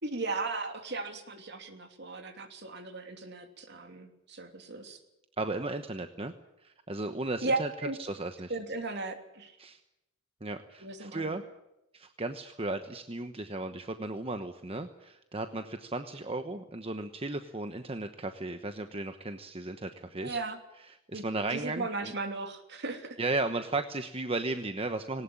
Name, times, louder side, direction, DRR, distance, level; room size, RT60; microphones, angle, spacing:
voice 1, 0.0-5.0 7.4-8.0 8.5-9.5 10.8-11.4 20.2-20.6 21.1-21.2 21.5-23.2, right 3 dB, 55° right, 6 dB, 3.0 m, -36 dB
voice 2, 5.4-6.3 6.6-8.5 9.6-9.8 10.4-11.4 11.9-20.4 21.1-22.1 23.2-25.2, right 2 dB, 30° right, 8 dB, 1.1 m, -35 dB
19.5 x 18.5 x 8.8 m, 0.88 s
head